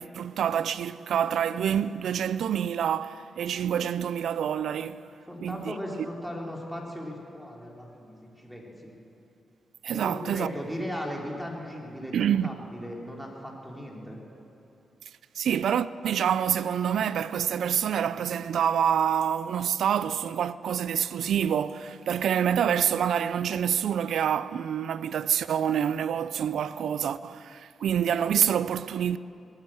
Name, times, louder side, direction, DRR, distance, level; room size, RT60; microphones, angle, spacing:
voice 1, 0.0-5.1 5.4-5.8 9.8-10.5 12.1-12.5 15.4-29.2, right 9 dB, 80° right, 0.4 m, -27 dB
voice 2, 5.3-8.9 9.9-12.1 12.4-14.2, equal, 5° right, 3.3 m, -37 dB
19.5 x 8.8 x 7.6 m
cardioid pair, 70°, 0 cm